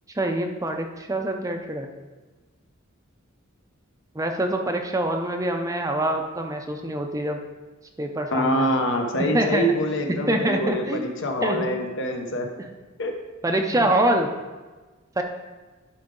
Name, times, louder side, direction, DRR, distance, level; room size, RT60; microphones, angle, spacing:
voice 1, 0.1-1.9 4.1-7.4 8.0-8.7 9.3-9.6 10.3-11.1 11.4-11.7 13.4-14.3 15.2-15.3, right 1 dB, 15° right, 4 dB, 0.6 m, -25 dB
voice 2, 8.3-12.5 13.0-13.1 13.7-13.8, equal, 65° left, 3 dB, 1.0 m, -25 dB
11.5 x 5.0 x 3.7 m, 1.3 s
head